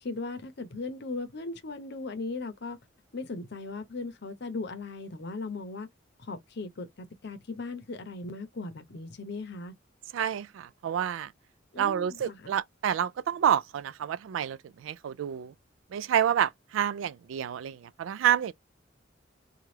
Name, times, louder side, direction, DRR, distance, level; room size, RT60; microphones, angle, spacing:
voice 1, 0.0-2.8 3.1-5.9 6.2-9.7 11.7-12.6, left 3 dB, 60° left, 0.7 m, -38 dB
voice 2, 10.1-11.3 11.8-15.5 15.9-18.5, right 9 dB, 85° right, 0.3 m, -28 dB
2.8 x 2.4 x 3.1 m
head